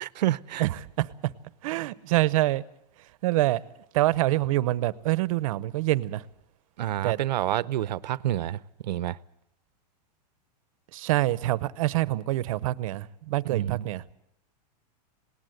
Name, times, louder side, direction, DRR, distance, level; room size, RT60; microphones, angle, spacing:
voice 1, 0.0-0.6 6.8-9.2 13.5-13.9, right 13 dB, 85° right, 0.7 m, -28 dB
voice 2, 0.6-1.3 1.6-2.6 3.2-3.6 3.9-6.2 7.0-7.2 10.9-14.0, right 16 dB, 55° right, 0.8 m, -26 dB
19.5 x 18.5 x 7.9 m
supercardioid pair, 165°, 21 cm